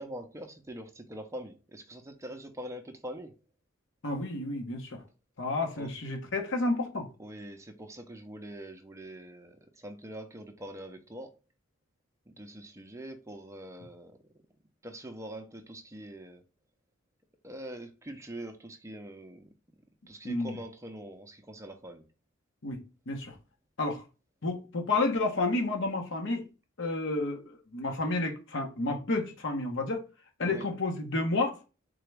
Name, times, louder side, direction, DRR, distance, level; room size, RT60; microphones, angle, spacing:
voice 1, 0.0-3.3 5.7-5.9 7.2-11.3 12.3-14.2 14.8-16.4 17.4-19.5 20.1-22.0 30.4-30.6, right 1 dB, 15° right, 0.5 m, -43 dB
voice 2, 4.0-5.0 5.4-7.1 20.2-20.6 22.6-22.8 23.1-23.3 23.8-24.0 24.4-26.5 26.8-30.0 30.4-31.6, left 2 dB, 65° left, 1.0 m, -30 dB
3.8 x 3.4 x 3.3 m
head